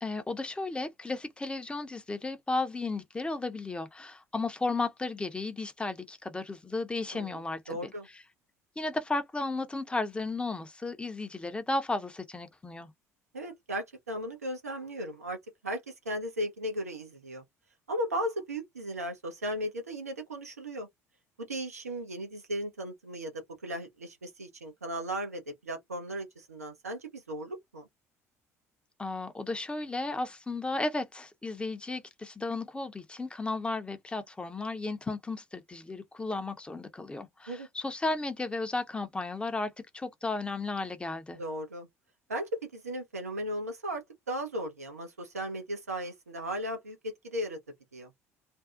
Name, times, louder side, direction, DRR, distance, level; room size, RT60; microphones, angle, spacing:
voice 1, 0.0-7.9 8.8-12.9 29.0-41.4, left 3 dB, 15° left, 0.6 m, -34 dB
voice 2, 7.7-8.1 13.3-15.4 15.6-17.4 17.9-20.9 21.4-27.8 37.5-37.7 41.3-41.9 42.3-47.6 47.9-48.1, equal, 85° right, 0.6 m, -36 dB
2.6 x 2.0 x 2.4 m
figure-of-eight pair, 55°, 8 cm